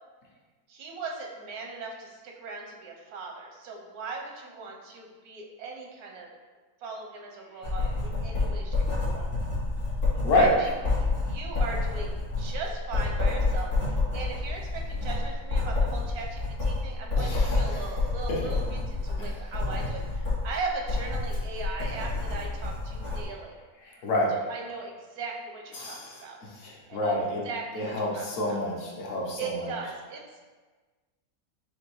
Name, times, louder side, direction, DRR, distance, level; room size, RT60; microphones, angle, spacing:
voice 1, 0.7-6.3 6.8-8.7 9.1-9.3 10.3-23.6 24.3-26.4 26.9-27.1 27.4-28.6 29.4-30.4, right 4 dB, 90° right, 0 dB, 1.2 m, -39 dB
Writing, 7.6-23.2, left 3 dB, 85° left, 2.2 m, -29 dB
voice 2, 10.2-10.5 17.2-17.8 18.3-18.4 19.2-19.3 23.8-24.3 25.7-27.4 27.7-29.7, left 1 dB, 60° left, -3 dB, 1.2 m, -28 dB
6.2 x 2.8 x 3.0 m, 1.3 s
omnidirectional pair, 1.5 m